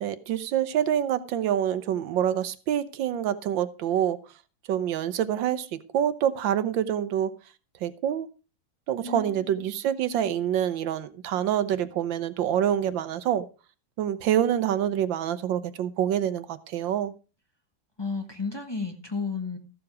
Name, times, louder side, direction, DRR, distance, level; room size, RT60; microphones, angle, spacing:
voice 1, 0.0-4.2 4.7-5.7 5.9-7.3 7.8-8.3 8.9-13.4 14.0-17.1, right 10 dB, 85° right, 1.6 m, -26 dB
voice 2, 9.0-9.4 18.0-19.6, left 4 dB, 15° left, 1.2 m, -32 dB
14.0 x 7.1 x 4.9 m
omnidirectional pair, 2.0 m